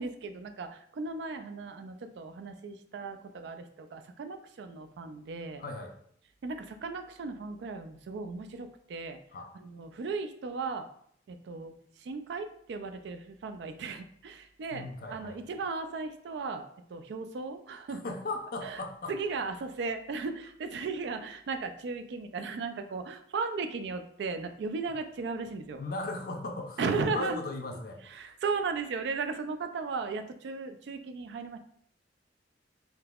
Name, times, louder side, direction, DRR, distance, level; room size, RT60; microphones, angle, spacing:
voice 1, 0.0-5.6 6.4-9.2 9.6-10.9 11.3-11.7 12.0-16.7 16.9-18.0 18.6-18.8 19.1-25.8 26.8-27.4 28.1-31.6, right 4 dB, 70° right, 8 dB, 0.3 m, -36 dB
voice 2, 5.6-5.9 9.3-9.5 14.7-15.4 17.9-19.2 25.8-28.0, left 2 dB, 50° left, 3 dB, 0.5 m, -37 dB
3.7 x 2.7 x 2.3 m, 0.64 s
head